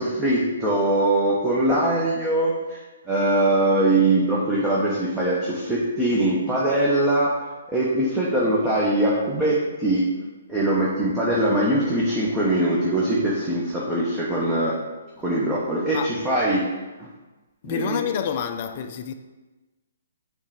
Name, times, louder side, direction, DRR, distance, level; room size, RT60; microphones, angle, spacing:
voice 1, 0.0-2.8 3.1-7.3 7.7-10.0 10.5-14.8 15.2-16.6 17.0-17.1 17.6-18.1, right 1 dB, 10° right, 1.1 m, -22 dB
voice 2, 17.6-19.1, left 8 dB, 40° left, 0.5 m, -28 dB
7.0 x 3.4 x 5.0 m
figure-of-eight pair, 130°, 0 cm